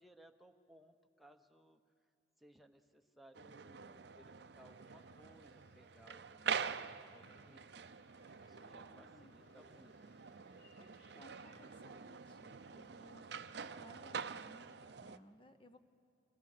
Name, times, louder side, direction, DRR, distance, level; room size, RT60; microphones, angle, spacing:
voice 1, 0.0-1.8 2.4-7.9 8.4-9.9, right 1 dB, ahead, 4 dB, 0.9 m, -64 dB
sound 1, 3.3-15.2, right 6 dB, 60° right, 0.6 m, -46 dB
sound 2, 4.6-13.7, left 1 dB, 55° left, 3.7 m, -71 dB
voice 2, 8.5-9.3 10.5-10.9 11.1-15.8, equal, 25° left, 9 dB, 1.0 m, -62 dB
26.0 x 21.0 x 6.7 m, 2.5 s
head